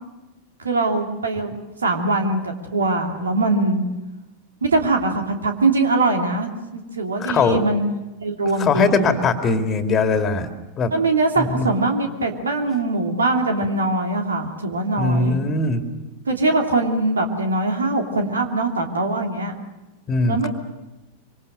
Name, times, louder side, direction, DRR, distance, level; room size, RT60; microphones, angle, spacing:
voice 1, 0.6-3.8 4.6-7.8 8.2-9.3 10.9-15.4 16.3-19.5 20.3-20.5, right 2 dB, 70° right, 3 dB, 2.8 m, -22 dB
voice 2, 7.2-7.6 8.6-10.5 10.8-10.9 11.4-11.7 15.0-15.8 20.1-20.5, left 3 dB, 25° left, 7 dB, 2.3 m, -20 dB
25.5 x 25.5 x 6.7 m, 1.1 s
figure-of-eight pair, 90°, 0 cm